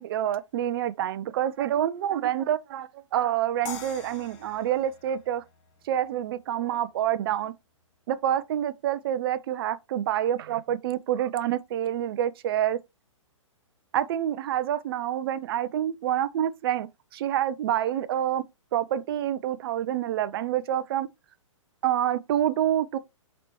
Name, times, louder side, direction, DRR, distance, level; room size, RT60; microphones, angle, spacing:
voice 1, 0.0-5.4 5.8-7.5 8.1-12.8 13.9-18.4 18.7-21.1 21.8-23.0, right 11 dB, 45° right, 0.5 m, -27 dB
sound 1, 3.7-6.7, left 6 dB, 35° left, 1.2 m, -44 dB
4.4 x 4.1 x 3.0 m
hypercardioid pair, 125°, 17 cm